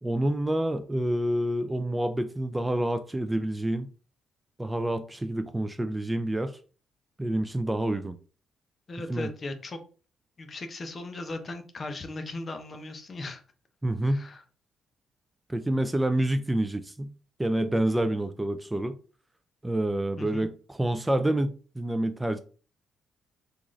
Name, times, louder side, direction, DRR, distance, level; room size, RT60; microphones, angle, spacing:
voice 1, 0.0-3.9 4.6-6.6 7.2-8.2 9.1-9.3 13.8-14.3 15.5-17.1 17.4-19.0 19.6-22.4, right 1 dB, 10° right, 0.3 m, -28 dB
voice 2, 8.9-9.8 10.4-13.4 14.0-14.4 20.2-20.5, left 2 dB, 35° left, 0.7 m, -38 dB
3.6 x 2.5 x 3.1 m
cardioid pair, 90°, 0 cm